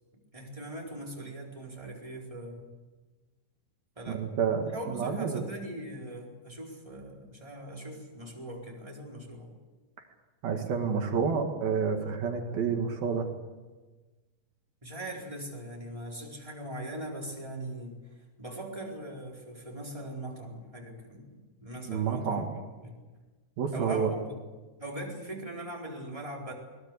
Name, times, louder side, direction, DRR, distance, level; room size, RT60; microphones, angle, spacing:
voice 1, 0.3-2.7 4.0-4.2 4.6-9.5 14.8-23.0 23.7-24.2 24.8-26.5, right 1 dB, 5° right, -2 dB, 3.8 m, -40 dB
voice 2, 4.1-5.4 10.4-13.3 21.9-22.5 23.6-24.1, right 6 dB, 60° right, 4 dB, 3.4 m, -29 dB
21.5 x 21.0 x 8.4 m, 1.3 s
omnidirectional pair, 5.3 m